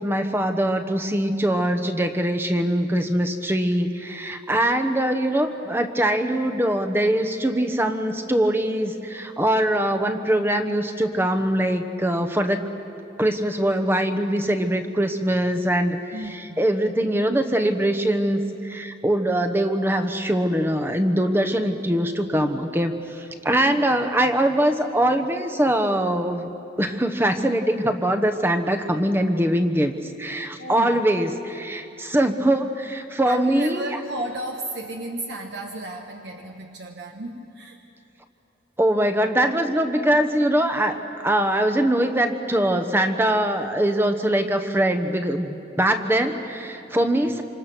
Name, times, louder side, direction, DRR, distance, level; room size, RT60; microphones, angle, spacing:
voice 1, 0.0-12.7 13.2-16.0 16.3-26.5 26.8-29.9 30.2-34.0 38.8-41.0 41.2-47.4, right 1 dB, 10° right, 6 dB, 1.0 m, -22 dB
voice 2, 16.1-16.6 30.6-31.0 33.2-37.8, right 1 dB, 55° right, 2 dB, 1.3 m, -34 dB
27.0 x 26.5 x 6.2 m, 2.8 s
head